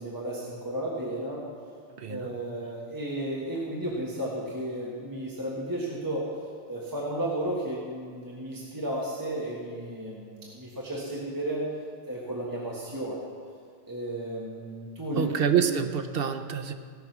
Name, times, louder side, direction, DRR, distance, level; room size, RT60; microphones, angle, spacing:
voice 1, 0.0-1.4 2.1-6.2 6.7-11.7 12.1-13.2 13.9-15.7, right 1 dB, 15° right, -5 dB, 1.5 m, -33 dB
voice 2, 2.0-2.4 15.2-16.7, right 8 dB, 60° right, 7 dB, 0.8 m, -27 dB
17.0 x 6.3 x 6.0 m, 2.2 s
omnidirectional pair, 1.2 m